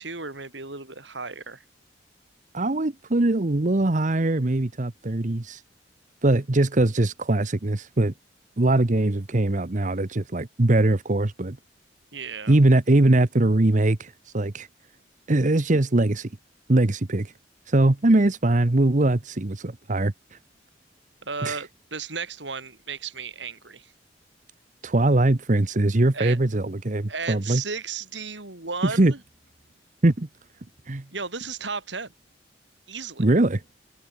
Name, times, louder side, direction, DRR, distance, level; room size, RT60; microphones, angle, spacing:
voice 1, 0.0-1.6 12.1-12.6 21.2-23.9 26.1-26.4 27.1-29.2 31.1-32.1 32.9-33.2, right 5 dB, 85° right, 4.6 m, -34 dB
voice 2, 2.5-5.6 6.2-8.1 8.6-11.6 12.5-14.7 15.3-16.3 16.7-17.3 17.7-20.4 21.4-21.6 24.8-27.6 28.8-29.1 30.0-30.3 30.9-31.0 33.2-33.6, right 2 dB, 45° right, 1.0 m, -21 dB
open air
head